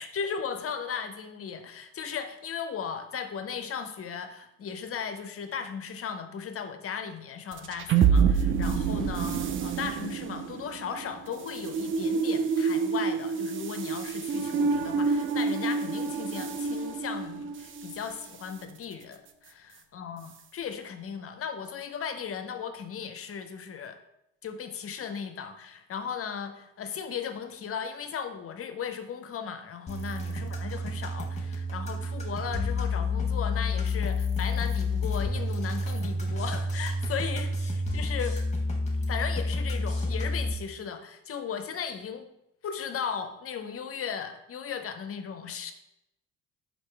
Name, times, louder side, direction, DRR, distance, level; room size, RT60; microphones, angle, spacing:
voice 1, 0.0-24.0 24.4-38.3 39.0-42.3 42.6-45.7, left 7 dB, 35° left, 8 dB, 0.5 m, -36 dB
sound 1, 7.5-18.0, right 6 dB, 30° right, 0.4 m, -27 dB
sound 2, 29.9-40.5, left 2 dB, 15° left, 1.1 m, -30 dB
4.3 x 2.7 x 3.3 m, 0.85 s
hypercardioid pair, 50°, 41 cm